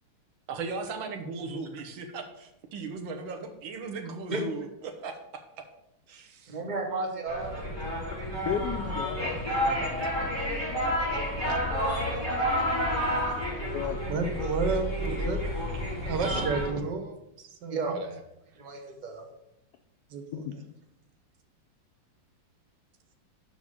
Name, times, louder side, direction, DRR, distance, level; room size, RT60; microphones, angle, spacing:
voice 1, 0.5-5.6 6.1-6.6 17.9-18.2, right 4 dB, 80° right, 5 dB, 1.7 m, -38 dB
voice 2, 6.5-7.5 10.7-13.7 17.7-18.0 18.6-19.2, right 3 dB, 30° right, 2 dB, 1.0 m, -36 dB
sound 1, 7.3-16.7, equal, 15° right, 2.5 m, -30 dB
voice 3, 8.4-10.5 13.7-14.1 20.3-20.5, left 8 dB, 75° left, 6 dB, 1.0 m, -35 dB
voice 4, 14.1-15.4 15.9-17.9 20.1-20.4, right 4 dB, 65° right, 6 dB, 1.5 m, -32 dB
5.6 x 4.9 x 6.5 m, 0.84 s
omnidirectional pair, 2.1 m